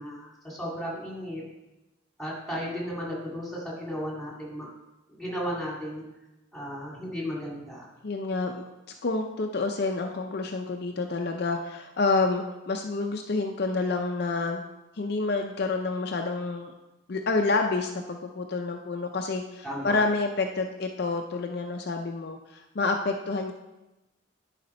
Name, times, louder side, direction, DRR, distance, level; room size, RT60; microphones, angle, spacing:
voice 1, 0.0-1.4 2.2-4.7 5.1-6.0 6.5-7.8 19.6-20.0, equal, ahead, -4 dB, 2.2 m, -34 dB
voice 2, 8.0-8.6 9.0-14.6 15.0-16.7 17.1-23.5, left 3 dB, 55° left, 3 dB, 0.5 m, -28 dB
10.5 x 5.0 x 4.3 m, 1.0 s
head